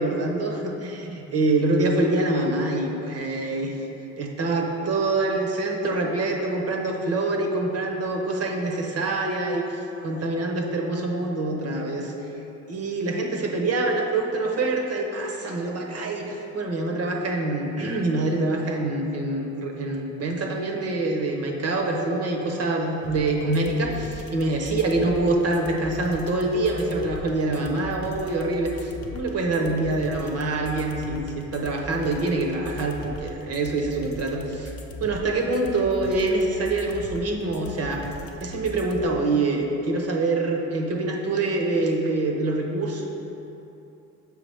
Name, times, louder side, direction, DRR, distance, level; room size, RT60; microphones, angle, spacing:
voice 1, 0.0-3.8 4.2-12.1 12.7-34.7 35.0-38.0 38.4-43.0, right 2 dB, 55° right, 1 dB, 0.8 m, -25 dB
sound 1, 23.0-39.0, left 1 dB, 50° left, 0.6 m, -39 dB
6.4 x 4.7 x 3.4 m, 2.9 s
cardioid pair, 90°, 30 cm